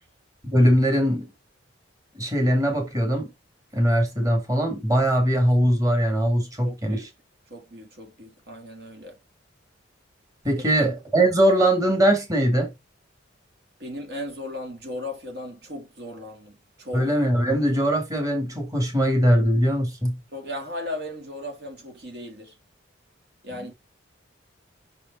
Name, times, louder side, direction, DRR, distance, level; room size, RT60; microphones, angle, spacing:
voice 1, 0.4-1.3 2.2-3.3 3.7-7.1 10.4-12.7 16.9-20.2 23.5-23.7, equal, 20° right, 2.1 m, -21 dB
voice 2, 6.6-7.1 7.5-9.2 13.8-17.1 20.3-22.6 23.4-23.7, left 1 dB, 60° right, 2.1 m, -36 dB
6.1 x 5.1 x 4.1 m
head